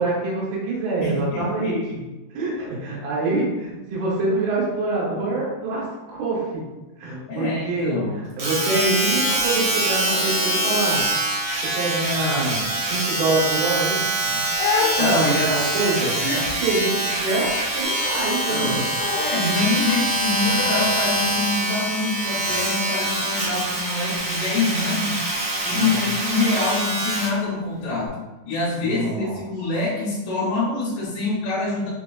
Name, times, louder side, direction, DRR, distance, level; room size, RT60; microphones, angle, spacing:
voice 1, 0.0-1.7 2.3-6.7 7.0-11.0 11.7-14.0 15.0-16.2 16.6-18.8 25.7-26.0 28.8-29.4, right 2 dB, 90° right, -5 dB, 3.0 m, -25 dB
voice 2, 1.0-2.0 7.3-8.2 12.2-12.3 14.2-15.5 16.2-16.5 18.5-18.8 19.2-25.2 25.6-28.1 28.5-31.9, left 3 dB, 70° left, -8 dB, 2.4 m, -25 dB
Domestic sounds home sounds, 8.4-27.4 28.1-28.2, right 1 dB, 65° right, 1.4 m, -24 dB
Crying sobbing, 14.2-21.1, left 5 dB, 90° left, 2.4 m, -30 dB
sound 1, 17.8-24.2, left 1 dB, 45° left, 1.3 m, -36 dB
6.1 x 2.2 x 2.3 m, 1.1 s
omnidirectional pair, 4.2 m